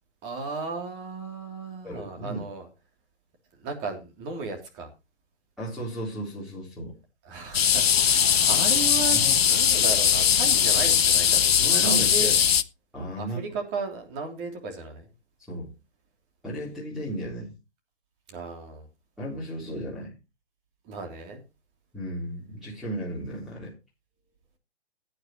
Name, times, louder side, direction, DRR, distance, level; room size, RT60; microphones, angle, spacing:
voice 1, 0.2-2.7 3.5-4.9 7.2-9.2 9.5-12.3 13.2-15.1 18.3-18.9 20.8-21.4, right 4 dB, 25° right, 3 dB, 3.2 m, -35 dB
voice 2, 1.8-2.5 5.6-7.0 9.1-9.3 11.6-12.4 12.9-13.5 15.5-15.7 16.4-17.5 19.2-20.2 21.9-23.7, right 1 dB, ahead, -6 dB, 3.9 m, -34 dB
sound 1, 7.5-12.6, left 8 dB, 65° left, 0.9 m, -20 dB
17.0 x 9.1 x 3.1 m, 0.27 s
figure-of-eight pair, 135°, 33 cm